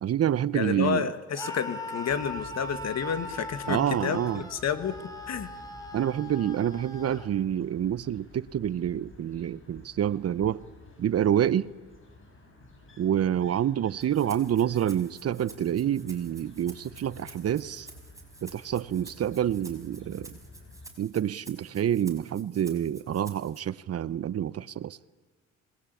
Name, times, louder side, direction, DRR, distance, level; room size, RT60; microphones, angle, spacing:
voice 1, 0.0-1.1 3.7-4.4 5.9-10.6 11.0-11.7 13.0-17.9 18.4-20.3 21.0-25.0, right 10 dB, 55° right, 0.8 m, -27 dB
voice 2, 0.5-5.0 5.3-5.5, left 7 dB, 60° left, 2.1 m, -30 dB
Screaming, 1.3-7.3, left 1 dB, 10° left, 4.6 m, -40 dB
sound 1, 2.1-20.9, left 1 dB, 40° left, 7.8 m, -52 dB
Rattle (instrument), 14.0-23.6, right 2 dB, 10° right, 5.7 m, -51 dB
27.0 x 20.0 x 8.5 m
cardioid pair, 90°, 30 cm